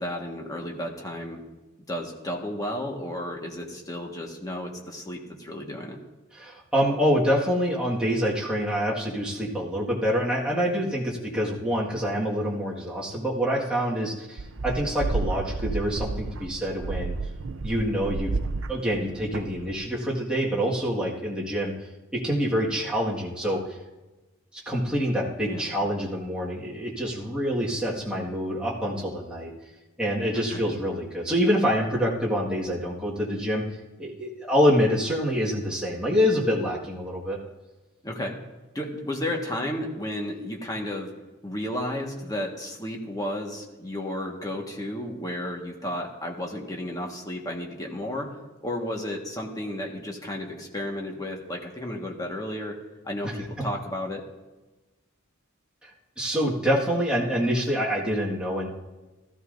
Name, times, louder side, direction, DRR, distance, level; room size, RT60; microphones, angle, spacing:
voice 1, 0.0-1.4 1.9-6.0 25.5-25.7 30.3-30.6 38.0-38.4 38.7-41.1 41.4-48.3 48.6-52.7 53.0-54.2, left 1 dB, 15° left, 0 dB, 1.5 m, -33 dB
voice 2, 6.3-17.1 17.6-18.3 18.7-21.7 22.1-23.6 24.5-29.5 30.0-33.6 34.0-37.4 53.2-53.7 55.8-55.9 56.2-58.7, equal, 5° right, -5 dB, 1.7 m, -26 dB
sound 1, 14.4-19.9, right 3 dB, 60° right, 0.5 m, -31 dB
17.0 x 13.5 x 2.6 m, 1.1 s
head